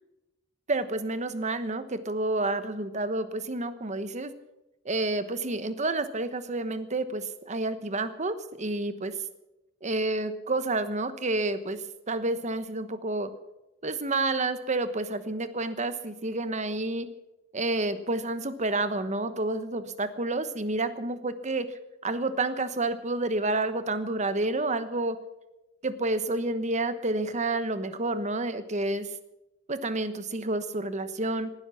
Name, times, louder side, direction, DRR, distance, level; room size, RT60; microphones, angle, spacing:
voice 1, 0.7-4.3 4.8-9.1 9.8-11.8 12.1-13.3 13.8-17.1 17.5-21.7 22.0-25.2 25.8-29.1 29.7-31.5, right 2 dB, 35° right, 11 dB, 1.2 m, -29 dB
19.0 x 12.5 x 5.7 m, 0.95 s
head